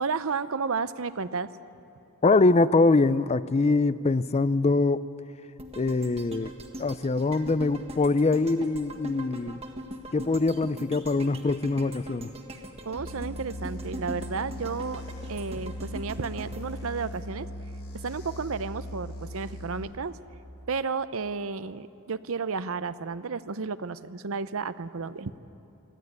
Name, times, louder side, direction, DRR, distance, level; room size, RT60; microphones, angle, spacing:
voice 1, 0.0-1.5 12.9-15.0 15.3-17.5 17.9-20.2 20.7-25.3, right 5 dB, 65° right, 14 dB, 0.7 m, -32 dB
voice 2, 2.2-5.1 5.8-6.5 6.8-9.6 10.1-12.3, left 3 dB, 30° left, 15 dB, 0.4 m, -23 dB
sound 1, 5.6-17.8 18.2-18.3, equal, 25° right, 1.7 m, -42 dB
sound 2, 13.0-19.9, equal, 65° left, 4.9 m, -39 dB
24.0 x 15.5 x 9.5 m, 2.8 s
head